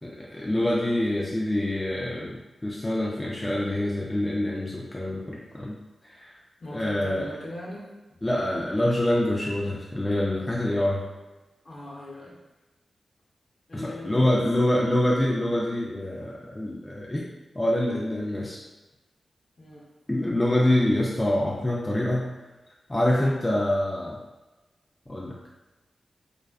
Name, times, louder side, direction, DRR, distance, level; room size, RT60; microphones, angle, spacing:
voice 1, 0.0-5.8 6.1-6.3 6.7-7.3 8.2-11.0 13.7-17.2 17.5-18.6 20.1-22.3 22.9-24.2 25.1-25.4, left 1 dB, 20° left, -4 dB, 0.3 m, -26 dB
voice 2, 6.6-8.3 11.6-12.4 13.7-14.4 19.6-19.9, left 1 dB, 50° left, -4 dB, 0.7 m, -40 dB
2.3 x 2.3 x 2.3 m, 1.1 s
cardioid pair, 65°, 0 cm